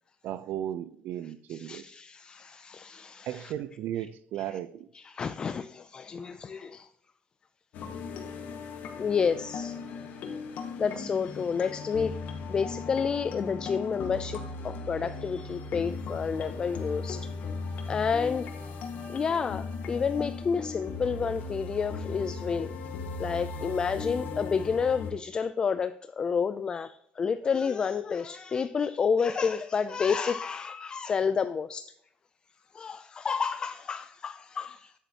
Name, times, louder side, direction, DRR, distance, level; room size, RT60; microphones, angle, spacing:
voice 1, 0.2-1.8 3.2-4.9, right 11 dB, 65° right, 0.5 m, -35 dB
voice 2, 1.5-3.5 4.5-4.6 4.9-6.9 9.0-9.8 10.8-12.1 12.5-17.3 17.9-18.5 19.1-22.8 23.2-31.9 32.7-34.9, left 6 dB, 25° left, 0.3 m, -30 dB
sound 1, 7.7-25.1, left 4 dB, 55° left, 1.6 m, -37 dB
10.0 x 8.3 x 2.8 m
cardioid pair, 155°, 3 cm